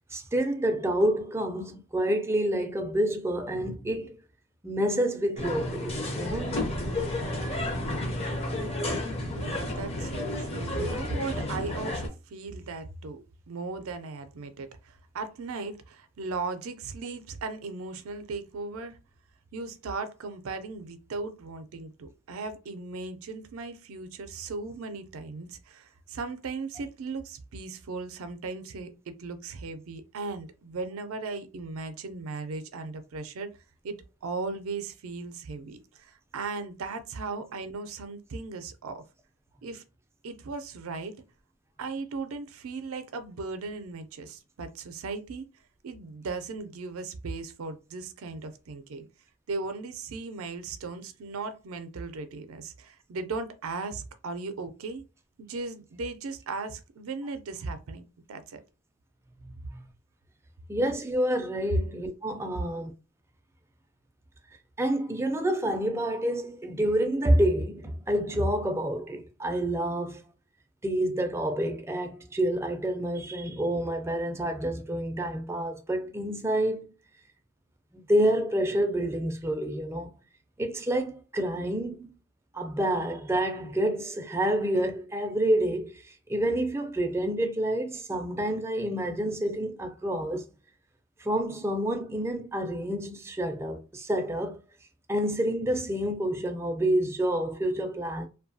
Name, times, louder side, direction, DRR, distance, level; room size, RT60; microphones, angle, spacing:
voice 1, 0.1-4.2 4.6-6.7 59.4-59.9 60.7-62.9 64.8-70.3 70.8-76.9 77.9-80.1 80.6-82.1 82.5-90.5 91.2-94.6 95.1-98.3, right 1 dB, 10° right, 0.4 m, -28 dB
sound 1, 5.4-12.1, left 1 dB, 30° left, 0.6 m, -31 dB
voice 2, 9.3-19.0 19.5-33.5 33.8-39.0 39.6-39.8 40.2-41.1 41.8-45.4 45.8-49.1 49.5-55.0 55.4-58.6, right 3 dB, 75° right, 0.4 m, -37 dB
2.7 x 2.2 x 2.6 m
head